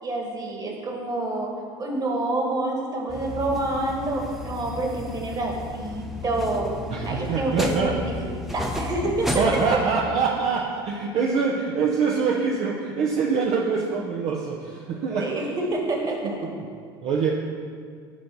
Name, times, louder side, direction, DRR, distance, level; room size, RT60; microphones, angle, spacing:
voice 1, 0.0-6.7 7.0-9.4 15.2-16.4, right 2 dB, 30° right, 0 dB, 1.9 m, -28 dB
sound 1, 3.1-9.8, left 2 dB, ahead, 0.8 m, -33 dB
voice 2, 6.9-7.9 9.4-15.3 16.2-16.5 17.0-17.3, right 5 dB, 55° right, -1 dB, 0.8 m, -24 dB
8.5 x 3.9 x 6.9 m, 2.1 s
hypercardioid pair, 75°, 13 cm